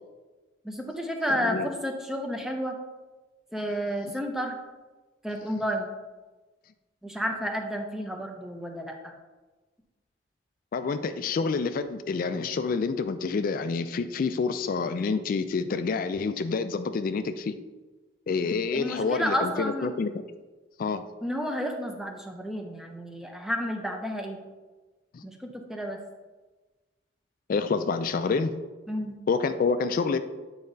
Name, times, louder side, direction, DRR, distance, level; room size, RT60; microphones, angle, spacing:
voice 1, 0.6-2.8 3.5-4.6 5.2-5.9 7.0-9.0 18.7-19.9 21.2-24.4 25.2-26.0 28.9-29.2, equal, ahead, 3 dB, 0.6 m, -31 dB
voice 2, 10.7-17.5 18.3-20.1 20.8-21.0 25.1-25.2 27.5-28.5 29.3-30.2, left 4 dB, 50° left, 10 dB, 0.3 m, -28 dB
8.5 x 4.8 x 2.7 m, 1.2 s
head